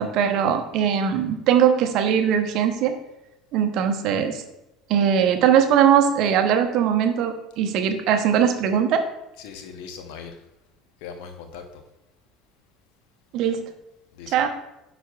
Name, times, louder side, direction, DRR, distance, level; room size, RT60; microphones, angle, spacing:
voice 1, 0.0-2.9 3.5-4.4 4.9-9.0 13.3-13.6 14.3-14.5, right 8 dB, 55° right, 7 dB, 0.7 m, -20 dB
voice 2, 9.4-10.3 11.0-11.6 14.2-14.5, left 6 dB, 65° left, 6 dB, 0.8 m, -39 dB
10.0 x 4.1 x 2.3 m, 0.91 s
figure-of-eight pair, 65°, 0 cm